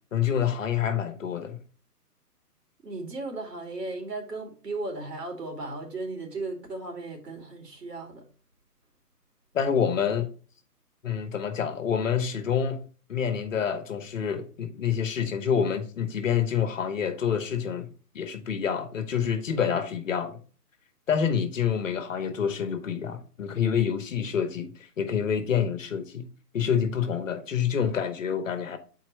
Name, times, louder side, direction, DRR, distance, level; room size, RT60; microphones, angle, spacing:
voice 1, 0.1-1.6 9.5-10.3 11.0-12.8 13.1-17.9 18.1-20.4 21.1-26.3 26.5-28.8, left 7 dB, 55° left, 1.1 m, -27 dB
voice 2, 2.8-8.3, right 2 dB, 80° right, 2.5 m, -36 dB
8.2 x 4.3 x 3.2 m
hypercardioid pair, 160°, 47 cm